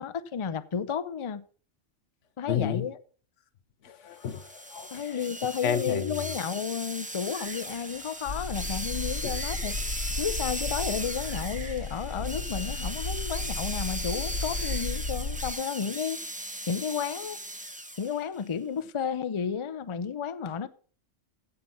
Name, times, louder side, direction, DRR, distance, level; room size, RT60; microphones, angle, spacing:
voice 1, 0.0-1.4 2.4-3.0 4.9-9.8 10.2-16.2 16.7-17.4 18.0-20.7, left 7 dB, 35° left, 0.5 m, -32 dB
voice 2, 2.5-2.8 3.8-5.2 5.6-6.2 9.2-9.3, left 8 dB, 85° left, 1.2 m, -31 dB
sound 1, 4.2-18.2, right 1 dB, 5° right, 0.8 m, -37 dB
sound 2, 7.2-15.1, right 2 dB, 60° right, 2.3 m, -51 dB
sound 3, 8.3-15.5, left 3 dB, 65° left, 1.2 m, -34 dB
15.5 x 6.0 x 5.4 m
omnidirectional pair, 1.2 m